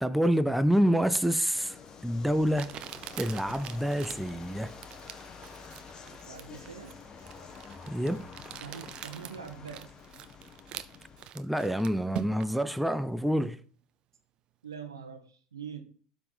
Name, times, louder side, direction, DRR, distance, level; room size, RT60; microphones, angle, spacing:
voice 1, 0.0-1.8 2.0-2.7 3.2-4.7 7.9-8.3 11.3-13.6, equal, ahead, 0.6 m, -27 dB
sound 1, 1.5-11.3, left 5 dB, 35° left, 1.3 m, -48 dB
Crumpling crinkling, 1.6-1.7 2.5-12.6, right 10 dB, 45° right, 0.7 m, -44 dB
voice 2, 6.2-7.0 8.6-9.9 14.6-15.8, right 7 dB, 90° right, 1.2 m, -43 dB
12.0 x 4.1 x 5.4 m
hypercardioid pair, 75°, 2 cm